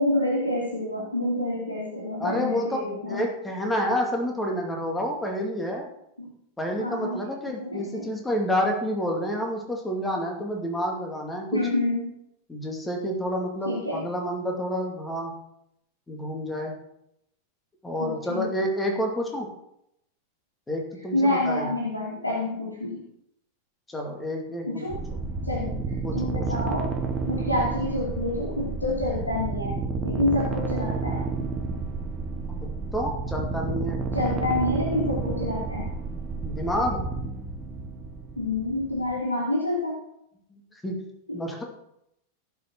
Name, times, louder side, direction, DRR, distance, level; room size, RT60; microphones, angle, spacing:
voice 1, 0.0-3.2 6.2-6.3 6.8-7.2 7.5-8.0 11.5-12.0 13.6-14.0 18.0-18.5 21.1-23.0 24.7-25.0 25.4-25.8 26.1-26.9 27.3-29.8 30.0-31.3 34.1-35.9 38.4-40.0 41.3-41.4, left 1 dB, 85° left, -3 dB, 2.7 m, -27 dB
voice 2, 2.2-5.9 6.6-11.6 12.5-15.4 16.1-16.7 17.8-19.5 20.7-21.7 23.9-24.9 26.0-26.5 32.6-34.0 36.4-37.0 40.5-41.0 41.3-41.6, equal, 10° left, 1 dB, 2.3 m, -29 dB
sound 1, 24.9-39.2, right 3 dB, 20° right, 1.6 m, -31 dB
16.5 x 5.6 x 4.6 m, 0.79 s
figure-of-eight pair, 90°, 0 cm